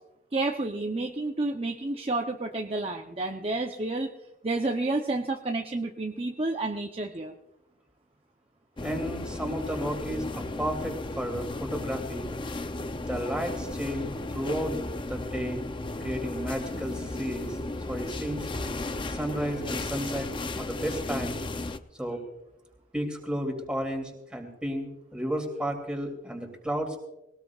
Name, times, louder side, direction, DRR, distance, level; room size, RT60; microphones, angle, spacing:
voice 1, 0.3-4.1 4.4-7.3, right 2 dB, 30° right, 2 dB, 0.7 m, -30 dB
sound 1, 8.8-21.8, left 2 dB, 25° left, 0.5 m, -34 dB
voice 2, 8.8-12.3 12.9-15.6 16.0-17.6 17.9-18.5 19.1-21.4 22.0-22.2 22.9-27.0, equal, 5° right, 2 dB, 2.8 m, -33 dB
20.5 x 19.0 x 2.4 m, 0.88 s
head